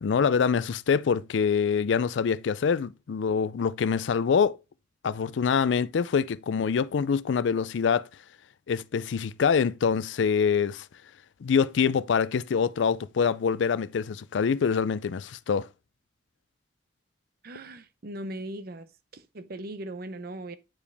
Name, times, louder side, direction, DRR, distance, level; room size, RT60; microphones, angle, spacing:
voice 1, 0.0-4.5 5.0-8.1 8.7-10.8 11.4-15.7, left 6 dB, 85° left, 0.4 m, -25 dB
voice 2, 17.4-18.9 19.1-20.5, right 1 dB, 55° right, 0.7 m, -38 dB
8.8 x 4.9 x 3.4 m
head